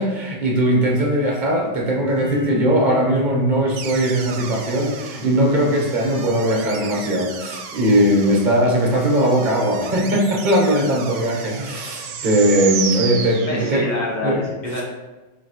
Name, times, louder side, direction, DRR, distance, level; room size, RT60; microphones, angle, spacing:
voice 1, 0.0-13.9 14.2-14.4, right 1 dB, 40° right, 0 dB, 1.0 m, -19 dB
sound 1, 2.0-7.5, left 1 dB, 80° left, 1.1 m, -40 dB
sound 2, 3.8-14.0, right 7 dB, 85° right, 0.9 m, -33 dB
voice 2, 13.5-14.8, left 1 dB, 40° left, -3 dB, 1.1 m, -26 dB
5.6 x 3.0 x 2.9 m, 1.2 s
omnidirectional pair, 1.2 m